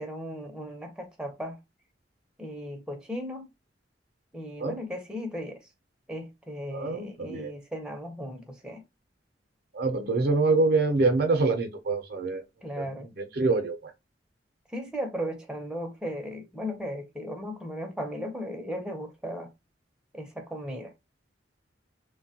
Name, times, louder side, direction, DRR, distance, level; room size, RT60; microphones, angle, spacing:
voice 1, 0.0-1.6 2.4-3.5 4.3-5.6 6.1-8.8 12.6-13.1 14.7-19.5 20.1-20.9, equal, 5° right, 0.6 m, -36 dB
voice 2, 6.7-7.5 9.7-12.4 12.8-12.9 13.4-13.9, right 3 dB, 55° right, 0.6 m, -25 dB
3.1 x 2.2 x 2.7 m
head